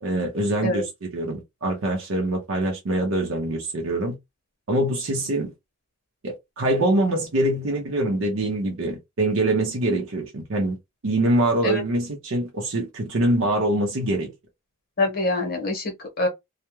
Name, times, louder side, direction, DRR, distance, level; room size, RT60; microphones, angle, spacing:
voice 1, 0.0-4.2 4.7-5.5 6.2-10.8 11.0-14.3, right 1 dB, 65° right, 0.5 m, -24 dB
voice 2, 15.0-16.3, left 2 dB, 45° left, 1.0 m, -25 dB
2.2 x 2.0 x 2.9 m
head